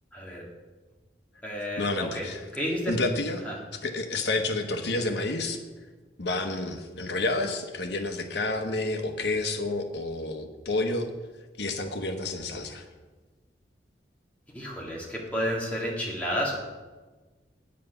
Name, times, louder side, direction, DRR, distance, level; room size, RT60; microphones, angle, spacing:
voice 1, 0.1-0.4 1.4-2.3 2.5-2.9 3.5-3.6 14.5-16.5, equal, 10° left, -4 dB, 2.0 m, -31 dB
voice 2, 1.8-2.5 2.9-3.4 3.7-5.6 6.2-11.1 11.6-12.8, left 2 dB, 75° left, 5 dB, 1.1 m, -29 dB
8.5 x 7.5 x 5.7 m, 1.3 s
head